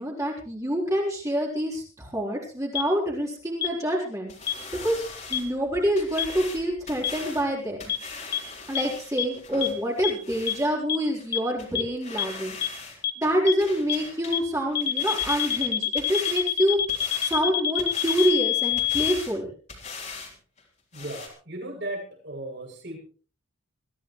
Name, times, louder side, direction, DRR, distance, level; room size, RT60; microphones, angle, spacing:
voice 1, 0.0-4.3 4.8-5.0 5.3-7.9 8.7-12.6 13.2-19.5, equal, 15° right, -2 dB, 4.0 m, -26 dB
sound 1, 2.8-2.9 3.6-3.7 4.5-4.6 5.3-5.4 6.2-6.3 7.0-7.1 7.9-8.0 8.3-8.4 8.8-8.9 9.2-9.3 9.6-9.7 10.0-10.1 10.5-10.6 10.9-11.0 11.3-11.4 11.8-11.9 12.2-12.3 12.6-12.7 13.0-13.1 13.5-13.6 13.9-14.0 14.3-14.4 14.8-19.1, left 11 dB, 50° left, 1.6 m, -25 dB
sound 2, 4.3-10.7 11.2-11.3 11.6-11.7 12.0-13.0 13.2-14.4 14.7-16.4 16.9-17.4 17.8-18.3 18.8-19.4 19.7-20.3 20.6-20.7 20.9-21.3, left 4 dB, 35° left, 3.9 m, -40 dB
voice 2, 20.9-23.0, right 1 dB, 55° right, 0 dB, 7.3 m, -36 dB
22.5 x 14.5 x 3.2 m, 0.39 s
head